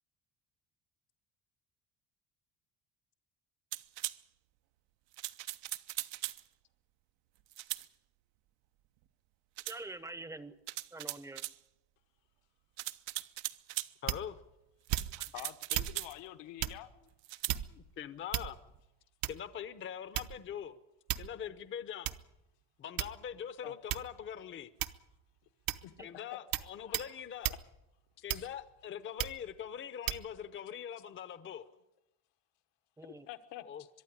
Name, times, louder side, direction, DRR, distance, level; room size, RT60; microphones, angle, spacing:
sound 1, 3.7-4.2 5.1-6.4 7.5-7.9 9.6-9.8 10.7-11.6 12.8-13.9 14.9-16.1 17.2-17.6, right 17 dB, 85° right, 1.0 m, -39 dB
voice 1, 9.7-10.6 10.9-11.4 15.2-15.5 26.0-26.1 33.0-33.3, right 2 dB, 5° right, 14 dB, 0.7 m, -46 dB
voice 2, 14.0-14.4 17.7-18.6 19.3-20.8 21.2-22.1 22.8-24.7 26.0-27.5 28.2-31.6 33.6-33.8, left 9 dB, 30° left, 13 dB, 0.7 m, -43 dB
sound 2, 14.1-14.4 14.9-15.3 15.7-16.0 16.6-16.8 17.5-17.9 18.3-18.8 19.2-19.5 20.2-20.5 21.1-21.4 22.1-22.2 23.0-23.4 23.9-24.2 24.8-25.1 25.7-25.9 26.5-26.7 26.9-27.1 27.4-27.6 28.3-28.7 29.2-29.4 30.1-30.2, right 12 dB, 50° right, 0.8 m, -35 dB
voice 3, 15.3-16.9 23.6-23.7 25.8-27.0 27.5-27.6 28.3-28.5 33.0-33.9, left 14 dB, 75° left, 10 dB, 1.3 m, -48 dB
23.0 x 12.0 x 9.7 m, 0.90 s
cardioid pair, 170°, 43 cm